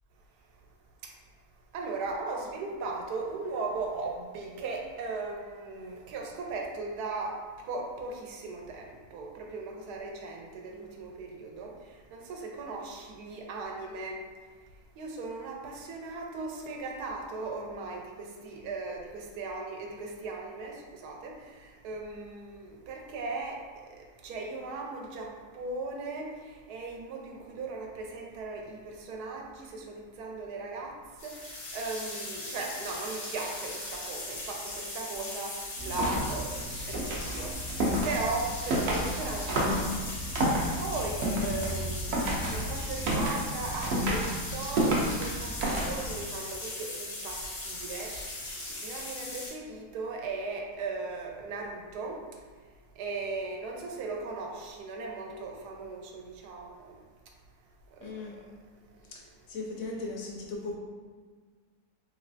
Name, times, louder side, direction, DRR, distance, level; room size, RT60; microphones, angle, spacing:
voice 1, 1.7-7.4 7.7-11.7 12.1-14.2 15.0-23.6 24.2-26.3 26.7-30.9 31.2-37.5 38.0-39.9 40.8-42.0 42.5-48.1 48.7-52.2 53.0-56.9 58.0-58.1, right 3 dB, 85° right, 1 dB, 1.1 m, -37 dB
sound 1, 31.2-49.5, left 2 dB, 45° left, 0.6 m, -39 dB
sound 2, 35.8-46.3, right 1 dB, 65° right, 0.6 m, -31 dB
voice 2, 58.0-58.3 59.1-60.7, left 3 dB, 70° left, -2 dB, 0.9 m, -38 dB
3.2 x 3.1 x 2.6 m, 1.5 s
omnidirectional pair, 1.6 m